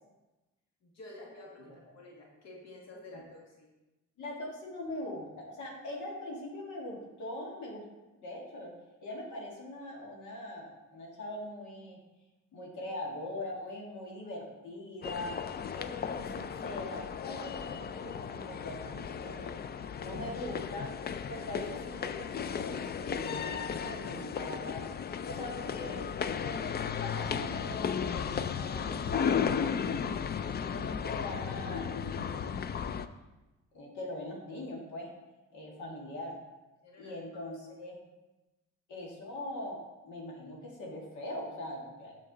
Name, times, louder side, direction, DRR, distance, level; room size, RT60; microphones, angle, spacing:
voice 1, 0.8-3.7 35.9-36.0 36.8-37.4, left 2 dB, 60° left, -2 dB, 1.8 m, -50 dB
voice 2, 4.2-7.9 8.2-8.7 9.0-12.0 12.5-15.4 15.7-19.5 20.0-20.9 21.3-24.9 25.3-26.7 27.0-29.7 30.7-32.6 33.7-35.1 35.5-36.4 37.0-38.0 38.9-42.2, left 1 dB, 75° left, -2 dB, 1.8 m, -42 dB
sound 1, 15.0-33.1, left 7 dB, 35° left, 0.4 m, -35 dB
6.7 x 6.5 x 3.9 m, 1.1 s
cardioid pair, 90°, 30 cm